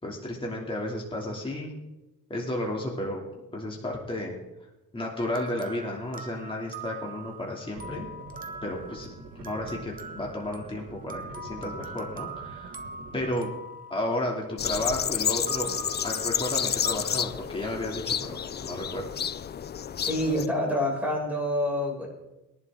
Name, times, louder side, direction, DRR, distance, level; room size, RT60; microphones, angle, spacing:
voice 1, 0.0-1.7 2.3-3.2 3.5-4.3 4.9-8.1 8.6-9.1 9.3-12.8 13.1-13.5 13.9-19.1, left 1 dB, 15° left, -2 dB, 2.7 m, -33 dB
sound 1, 5.2-14.9 15.5-17.0, right 3 dB, 25° right, 1.2 m, -43 dB
sound 2, 7.8-13.3, right 3 dB, 80° right, 1.6 m, -45 dB
sound 3, 14.6-20.5, left 8 dB, 35° left, 0.4 m, -30 dB
voice 2, 20.0-22.1, left 1 dB, 5° right, -3 dB, 6.2 m, -27 dB
21.5 x 11.5 x 3.7 m, 0.99 s
cardioid pair, 125°, 32 cm